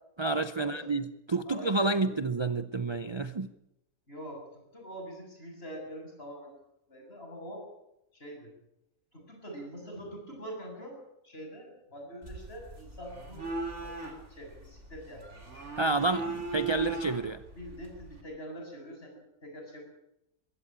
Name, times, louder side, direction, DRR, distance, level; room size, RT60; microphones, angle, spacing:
voice 1, 0.2-3.5 15.8-17.4, right 3 dB, 30° right, 12 dB, 0.5 m, -29 dB
voice 2, 1.4-2.2 4.1-6.5 6.9-7.6 8.1-8.5 9.1-11.0 11.2-13.5 13.8-15.2 17.5-19.8, equal, 40° left, 1 dB, 7.7 m, -44 dB
sound 1, 12.2-18.2, right 3 dB, 45° right, 3.6 m, -39 dB
23.0 x 16.0 x 8.7 m, 0.86 s
omnidirectional pair, 1.6 m